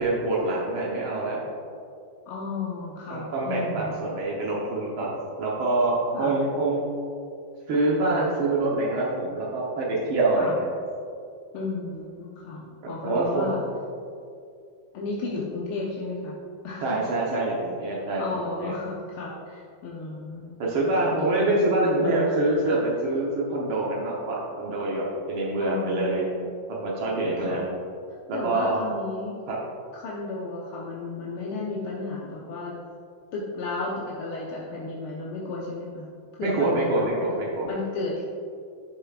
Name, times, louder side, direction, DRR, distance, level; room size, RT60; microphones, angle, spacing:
voice 1, 0.0-1.5 3.1-6.9 7.7-10.7 12.8-13.5 16.8-18.7 20.6-26.2 26.7-27.7 28.3-28.8 29.5-29.6 36.4-37.7, right 2 dB, 75° right, -4 dB, 1.9 m, -25 dB
voice 2, 2.3-4.1 6.1-6.3 10.3-10.5 11.5-13.6 14.9-16.4 16.6-17.0 18.2-20.5 20.9-22.3 25.6-26.5 27.4-27.6 28.3-29.4 29.9-32.8 33.3-36.1 36.3-37.3 37.6-38.3, left 3 dB, 85° left, -5 dB, 1.8 m, -33 dB
12.5 x 6.7 x 2.4 m, 2.4 s
omnidirectional pair, 2.3 m